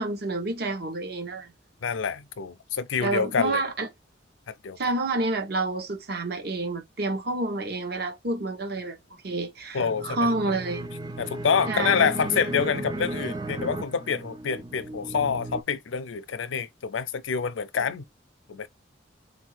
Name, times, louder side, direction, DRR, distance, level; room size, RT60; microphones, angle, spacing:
voice 1, 0.0-1.5 3.0-3.9 4.8-9.0 9.2-10.9 11.7-12.1, right 2 dB, 55° right, 1.0 m, -29 dB
voice 2, 1.8-3.6 4.5-4.8 9.7-10.2 10.5-10.6 11.2-18.1 18.5-18.7, left 6 dB, 90° left, 0.5 m, -27 dB
sound 1, 9.8-15.6, right 2 dB, 20° right, 0.3 m, -35 dB
3.9 x 2.7 x 4.6 m
head